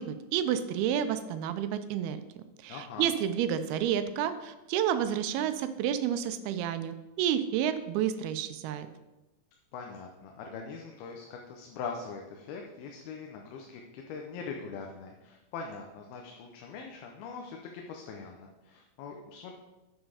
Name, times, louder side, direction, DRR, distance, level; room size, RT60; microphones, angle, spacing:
voice 1, 0.0-2.2 2.6-8.9, right 9 dB, 90° right, 10 dB, 2.6 m, -30 dB
voice 2, 2.7-3.1 9.7-19.5, left 5 dB, 85° left, 2 dB, 2.7 m, -42 dB
7.6 x 6.2 x 4.9 m, 1.0 s
omnidirectional pair, 4.4 m